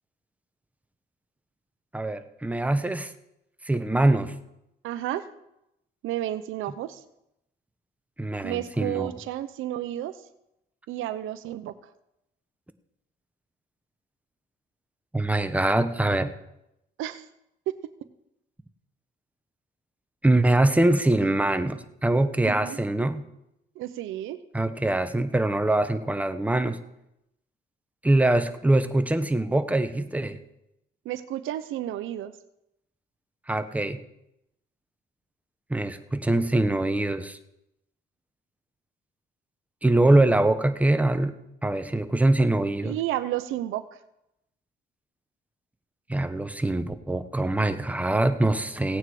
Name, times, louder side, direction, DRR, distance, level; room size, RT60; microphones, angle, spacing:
voice 1, 1.9-3.1 3.7-4.3 8.2-9.1 15.1-16.3 20.2-23.2 24.5-26.8 28.0-30.4 33.5-34.0 35.7-37.4 39.8-41.3 41.6-43.0 46.1-49.0, right 2 dB, 5° right, 9 dB, 1.1 m, -23 dB
voice 2, 4.8-5.2 6.0-7.0 8.4-10.1 10.9-11.7 17.0-17.2 17.7-17.8 22.4-22.8 23.8-24.4 31.0-32.3 42.8-43.8, right 13 dB, 90° right, 14 dB, 0.8 m, -31 dB
16.5 x 9.0 x 4.9 m, 0.84 s
cardioid pair, 90°, 20 cm